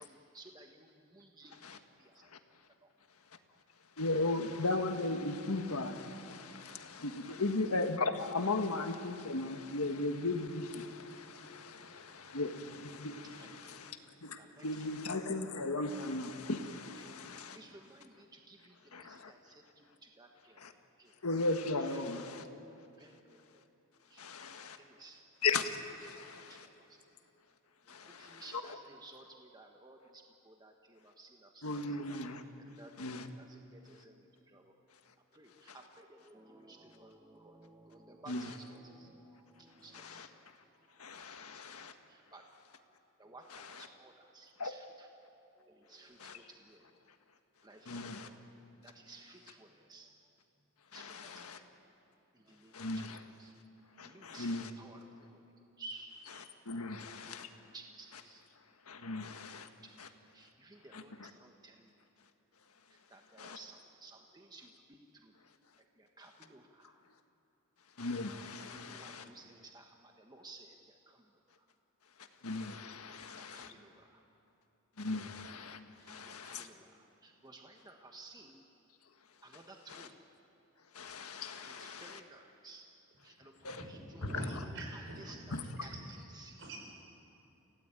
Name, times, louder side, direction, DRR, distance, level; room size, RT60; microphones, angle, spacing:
voice 1, 0.0-2.3 2.8-2.9 13.4-13.8 14.4-14.9 17.0-17.1 17.3-20.6 21.0-21.1 21.8-22.0 22.5-22.6 23.0-23.4 24.1-25.2 26.1-27.0 27.9-32.0 32.6-32.9 33.4-34.7 35.3-40.4 40.9-41.8 42.1-42.4 43.2-45.1 45.6-46.8 47.6-48.4 48.8-50.1 50.9-51.6 52.3-53.0 53.4-53.5 54.0-55.4 55.8-56.2 57.1-58.4 59.0-59.1 59.4-59.6 59.8-60.0 60.3-61.9 62.9-65.3 65.8-67.0 68.7-71.6 73.1-74.2 76.0-78.6 79.4-80.2 81.5-82.9 83.2-84.3 84.9-86.7, right 2 dB, 20° right, 2 dB, 1.3 m, -56 dB
voice 2, 4.0-17.6 18.9-19.3 20.6-20.7 21.2-22.5 24.2-24.8 25.4-26.7 27.9-28.8 31.6-32.4 33.0-33.3 35.7-35.8 38.3-38.5 39.9-40.3 41.0-41.9 43.5-43.9 44.6-44.7 46.2-46.4 47.8-48.3 50.9-51.6 52.7-53.2 54.0-54.7 56.6-57.5 58.9-59.7 60.0-60.1 60.9-61.3 63.4-63.6 68.0-69.2 72.4-73.7 75.0-75.8 76.1-76.7 79.9-80.1 80.9-82.2 83.6-83.8 85.5-85.9, left 3 dB, 90° left, 7 dB, 1.6 m, -37 dB
voice 3, 83.7-85.9 86.6-86.8, right 1 dB, 65° right, 0 dB, 6.0 m, -44 dB
29.0 x 17.0 x 9.0 m, 3.0 s
head